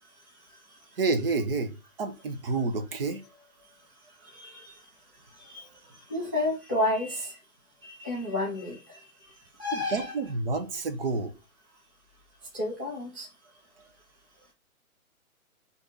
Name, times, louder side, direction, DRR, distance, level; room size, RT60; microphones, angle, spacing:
voice 1, 0.0-1.0 3.9-7.4 7.8-10.1 12.5-13.3, left 2 dB, 15° left, -4 dB, 0.4 m, -33 dB
voice 2, 1.0-3.2 9.7-11.3, right 3 dB, 40° right, 6 dB, 0.7 m, -29 dB
4.7 x 2.6 x 2.7 m, 0.28 s
hypercardioid pair, 145°, 44 cm